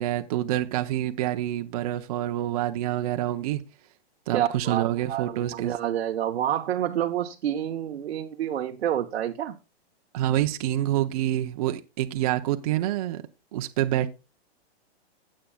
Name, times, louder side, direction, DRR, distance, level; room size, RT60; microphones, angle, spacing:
voice 1, 0.0-3.6 4.3-5.7 10.1-13.2 13.5-14.1, right 13 dB, 35° right, 0.6 m, -27 dB
voice 2, 4.3-9.6, right 11 dB, 90° right, 1.0 m, -28 dB
16.0 x 7.6 x 2.2 m
hypercardioid pair, 160°, 32 cm